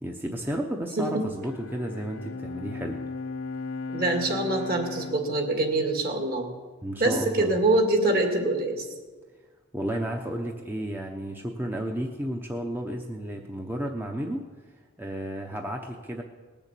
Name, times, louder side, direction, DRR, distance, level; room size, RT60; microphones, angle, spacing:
voice 1, 0.0-3.0 6.8-7.5 9.7-14.5 15.0-16.2, right 1 dB, 10° right, 2 dB, 0.8 m, -32 dB
Bowed string instrument, 1.4-6.9, left 4 dB, 70° left, 0.7 m, -37 dB
voice 2, 3.9-6.5 7.0-8.9, right 2 dB, 50° right, 3 dB, 2.3 m, -24 dB
19.5 x 7.0 x 8.3 m, 1.4 s
head